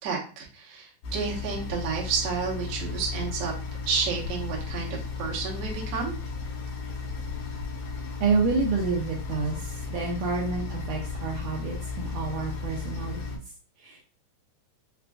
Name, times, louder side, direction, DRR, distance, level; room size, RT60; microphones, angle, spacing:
voice 1, 0.0-3.5 3.8-6.1, right 5 dB, 70° right, -3 dB, 1.5 m, -31 dB
sound 1, 1.0-13.4, left 4 dB, 70° left, 2.4 m, -34 dB
voice 2, 8.2-13.2 13.8-14.1, right 4 dB, 85° right, -3 dB, 1.8 m, -28 dB
5.8 x 2.5 x 2.3 m, 0.38 s
omnidirectional pair, 4.4 m